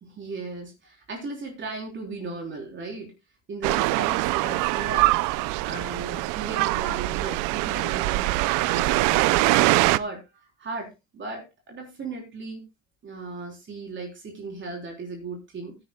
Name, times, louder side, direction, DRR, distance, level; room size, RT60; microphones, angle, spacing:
voice 1, 0.0-3.1 3.5-5.1 5.6-12.6 13.0-15.8, right 3 dB, 35° right, 1 dB, 3.8 m, -37 dB
sound 1, 3.6-10.0, right 20 dB, 70° right, 0.6 m, -23 dB
16.0 x 10.0 x 2.3 m, 0.24 s
cardioid pair, 110°, 32 cm